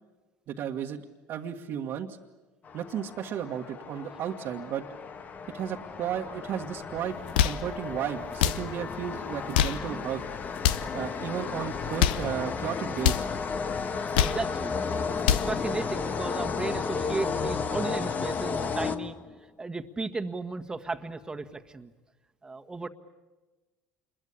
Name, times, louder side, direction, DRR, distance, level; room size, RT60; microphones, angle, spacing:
voice 1, 0.5-1.0 1.3-2.2 2.7-4.8 5.5-7.2 7.4-10.2 10.9-13.2, right 9 dB, 55° right, 0 dB, 1.7 m, -34 dB
sound 1, 2.6-19.5, left 5 dB, 35° left, 1.5 m, -33 dB
sound 2, 7.2-7.7 8.3-8.7 9.4-9.9 10.5-10.9 11.8-12.3 13.0-13.3 13.9-14.5 15.0-15.6, left 10 dB, 90° left, 0.8 m, -25 dB
voice 2, 14.0-15.0 15.3-19.2 19.6-21.9 22.4-22.9, right 3 dB, 15° right, 6 dB, 1.7 m, -35 dB
27.5 x 22.0 x 8.6 m, 1.2 s
supercardioid pair, 90°, 5 cm